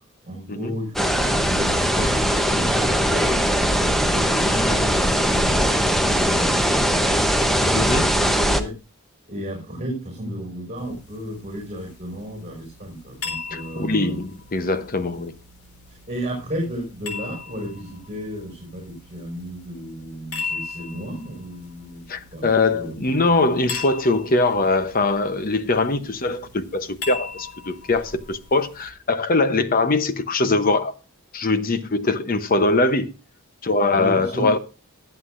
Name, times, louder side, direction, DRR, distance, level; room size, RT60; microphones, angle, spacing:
voice 1, 0.2-7.2 8.1-8.7 9.3-14.2 15.9-22.1 22.3-22.5 22.7-23.3 33.9-34.5, equal, 25° right, 5.5 m, -33 dB
sound 1, 1.0-8.6, equal, ahead, 0.9 m, -20 dB
voice 2, 7.7-8.1 13.5-15.4 22.1-30.9 31.3-33.1 33.6-34.6, left 3 dB, 40° left, 0.8 m, -22 dB
sound 2, 10.8-28.9, left 4 dB, 75° left, 4.0 m, -39 dB
22.5 x 8.0 x 2.6 m
head